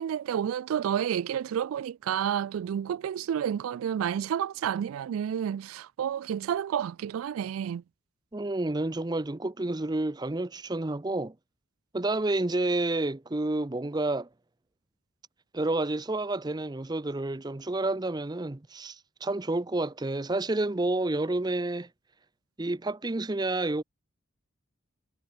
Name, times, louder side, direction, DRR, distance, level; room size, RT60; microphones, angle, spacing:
voice 1, 0.0-7.8, right 9 dB, 90° right, 0.3 m, -30 dB
voice 2, 8.3-11.3 11.9-14.3 15.5-21.9 22.6-23.8, right 2 dB, 20° right, 0.6 m, -29 dB
head